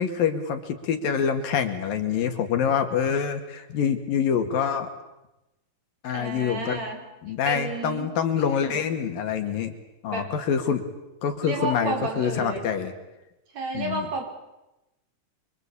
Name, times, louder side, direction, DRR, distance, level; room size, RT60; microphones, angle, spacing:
voice 1, 0.0-4.9 6.0-6.8 7.2-9.8 10.0-10.8 11.2-12.9 13.7-14.1, left 7 dB, 75° left, 6 dB, 3.9 m, -26 dB
voice 2, 6.1-7.0 7.5-8.1 10.1-10.3 11.4-12.6 13.5-14.2, right 2 dB, 50° right, 2 dB, 5.8 m, -31 dB
28.5 x 24.0 x 8.5 m, 0.98 s
omnidirectional pair, 4.1 m